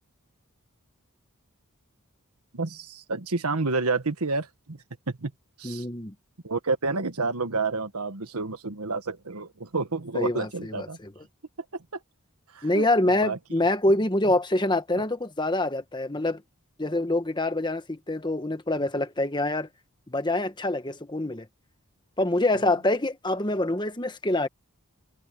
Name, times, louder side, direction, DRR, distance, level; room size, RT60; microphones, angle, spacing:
voice 1, 2.5-4.8 5.2-5.3 5.6-5.8 6.4-11.0 11.7-11.8 12.5-12.9 13.2-13.4, right 3 dB, 90° right, 1.5 m, -29 dB
voice 2, 5.6-6.1 10.1-11.2 12.6-16.4 16.8-19.7 20.1-21.5 22.2-24.5, left 1 dB, 20° left, 1.2 m, -26 dB
head